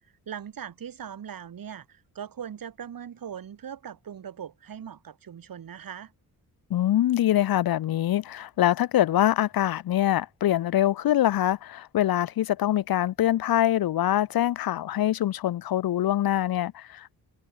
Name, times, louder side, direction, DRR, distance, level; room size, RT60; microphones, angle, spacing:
voice 1, 0.3-6.1, right 8 dB, 65° right, 2.6 m, -40 dB
voice 2, 6.7-17.1, left 12 dB, 70° left, 0.7 m, -24 dB
cardioid pair, 100°, 37 cm